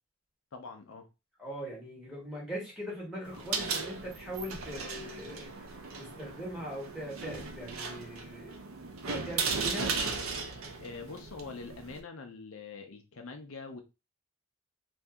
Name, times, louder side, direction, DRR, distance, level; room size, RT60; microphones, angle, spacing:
voice 1, 0.5-1.1 10.8-13.8, left 4 dB, 75° left, 5 dB, 0.6 m, -44 dB
voice 2, 1.4-8.6 9.0-9.9, equal, ahead, -4 dB, 1.3 m, -41 dB
sound 1, 3.3-12.0, right 4 dB, 80° right, 0.6 m, -37 dB
2.7 x 2.6 x 3.5 m, 0.26 s
head